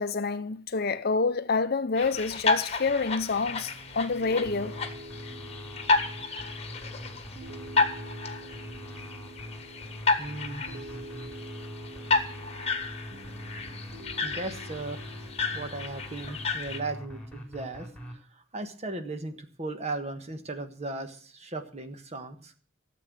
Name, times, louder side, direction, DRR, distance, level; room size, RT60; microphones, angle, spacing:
voice 1, 0.0-4.7, left 4 dB, 50° left, 0.7 m, -28 dB
sound 1, 2.0-16.8, left 3 dB, 30° left, 1.5 m, -32 dB
Piano, 3.4-16.5, right 1 dB, 55° right, 1.0 m, -46 dB
sound 2, 4.5-18.2, equal, 5° left, 3.6 m, -43 dB
voice 2, 10.2-11.0 14.2-15.0 15.5-22.5, right 2 dB, 35° right, 1.4 m, -37 dB
14.0 x 7.8 x 7.9 m
head